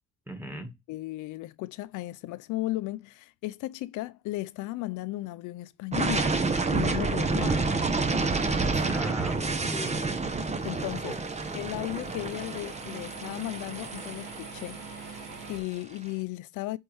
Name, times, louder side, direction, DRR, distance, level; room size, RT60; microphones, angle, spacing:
voice 1, 0.3-0.7 7.5-7.7 8.9-10.2 11.0-11.6, equal, 5° right, 1.9 m, -40 dB
voice 2, 0.9-6.3 6.7-7.7 7.9-8.1 10.6-11.1 11.5-16.8, left 18 dB, 90° left, 0.5 m, -35 dB
sound 1, 5.9-15.7, right 3 dB, 20° right, 1.0 m, -29 dB
sound 2, 8.7-15.6, right 4 dB, 85° right, 3.0 m, -45 dB
8.5 x 4.3 x 3.4 m
cardioid pair, 90°, 30 cm